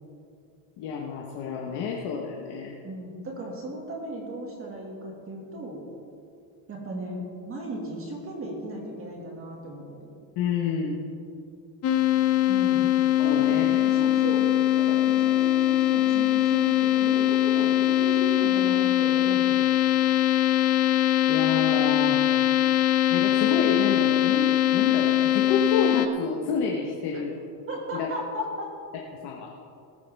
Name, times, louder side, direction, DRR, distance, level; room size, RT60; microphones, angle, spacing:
voice 1, 0.8-2.8 10.4-11.0 13.2-13.8 21.3-22.2 23.1-27.4 27.9-28.1 29.2-29.5, left 6 dB, 55° left, -1 dB, 1.4 m, -29 dB
voice 2, 2.8-5.8 6.7-10.0 12.5-12.9 13.2-14.5 14.8-19.7 27.7-28.7, right 1 dB, 25° right, -1 dB, 2.2 m, -36 dB
sound 1, 11.8-26.1, left 13 dB, 30° left, 0.6 m, -22 dB
19.0 x 9.4 x 3.6 m, 2.5 s
cardioid pair, 150°, 48 cm